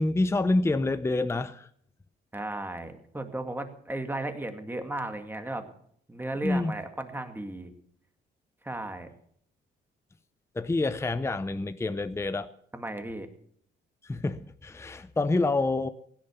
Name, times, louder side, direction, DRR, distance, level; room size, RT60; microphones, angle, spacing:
voice 1, 0.0-1.7 6.4-6.7 10.5-12.5 14.0-15.9, left 2 dB, 15° left, 0.7 m, -27 dB
voice 2, 2.3-5.7 6.1-7.7 8.6-9.1 12.7-13.3, right 1 dB, 10° right, 2.1 m, -35 dB
16.0 x 10.5 x 6.9 m
cardioid pair, 90°, 20 cm